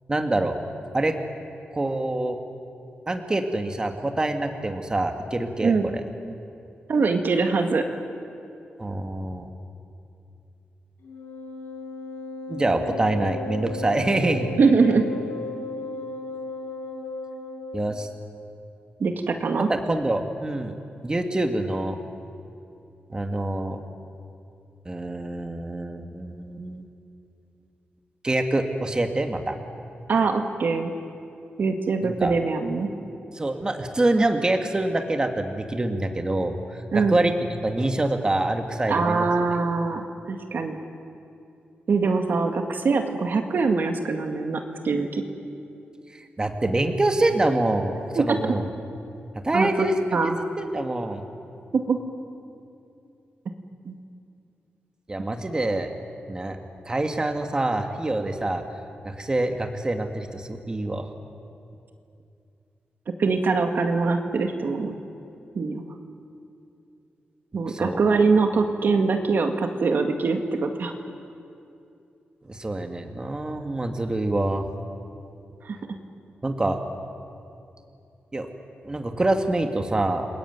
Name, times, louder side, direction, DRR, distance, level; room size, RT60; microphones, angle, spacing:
voice 1, 0.1-0.6 0.9-1.1 1.7-2.4 3.1-6.0 8.8-9.5 12.5-14.5 17.7-18.1 19.9-20.8 21.0-22.0 23.1-23.8 24.9-26.9 28.2-29.6 32.0-32.4 33.3-39.3 46.1-48.6 49.4-51.2 55.1-55.9 56.3-56.6 56.9-58.6 59.0-61.1 67.7-68.0 72.5-74.7 76.4-76.8 78.3-78.5 78.8-80.3, right 2 dB, 20° right, 5 dB, 1.9 m, -25 dB
voice 2, 6.9-7.9 14.6-15.1 19.0-19.7 30.1-30.9 31.6-32.9 36.9-37.2 38.9-40.8 41.9-45.2 48.2-48.4 49.5-49.9 50.1-50.4 51.7-52.0 53.9-54.0 63.2-65.0 65.6-65.8 67.5-70.9 75.6-75.8, right 4 dB, 60° right, 5 dB, 2.1 m, -23 dB
Wind instrument woodwind instrument, 11.0-18.1, left 3 dB, 85° left, 4.8 m, -35 dB
30.0 x 21.0 x 9.4 m, 2.6 s
wide cardioid pair, 130°, 4 cm